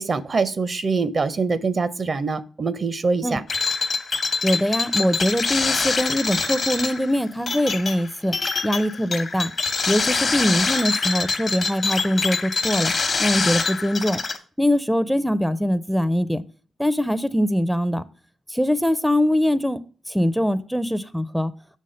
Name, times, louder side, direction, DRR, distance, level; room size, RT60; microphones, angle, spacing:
voice 1, 0.0-3.4, right 4 dB, 50° right, 0.5 m, -24 dB
sound 1, 3.5-14.4, left 4 dB, 55° left, 0.9 m, -25 dB
voice 2, 4.4-8.4 8.6-9.5 9.9-12.9 13.2-14.2 14.6-16.4 16.8-18.0 18.5-19.8 20.1-21.5, equal, ahead, 0.4 m, -22 dB
6.4 x 3.7 x 5.4 m
supercardioid pair, 50°, 0 cm